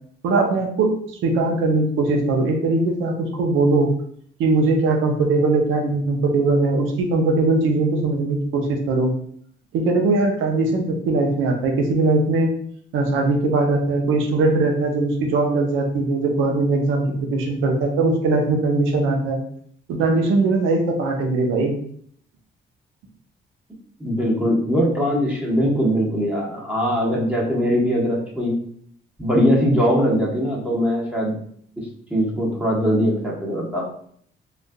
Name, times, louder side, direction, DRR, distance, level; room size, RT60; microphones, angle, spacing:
voice 1, 0.2-0.9 1.2-3.9 4.4-9.1 9.7-12.5 12.9-19.4 19.9-21.7, right 3 dB, 85° right, 2 dB, 0.7 m, -20 dB
voice 2, 24.0-28.5 29.2-31.3 32.1-33.9, equal, 5° right, -4 dB, 1.1 m, -21 dB
3.8 x 2.4 x 2.2 m, 0.62 s
cardioid pair, 90°, 20 cm